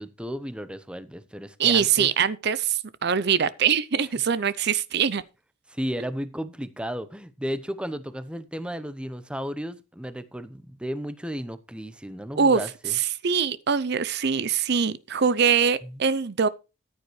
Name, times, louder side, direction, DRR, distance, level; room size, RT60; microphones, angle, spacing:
voice 1, 0.0-2.1 5.7-12.9, equal, 5° right, 0.8 m, -34 dB
voice 2, 1.6-5.2 12.4-12.6 12.9-16.5, right 6 dB, 50° right, 0.6 m, -23 dB
14.0 x 9.4 x 3.2 m
head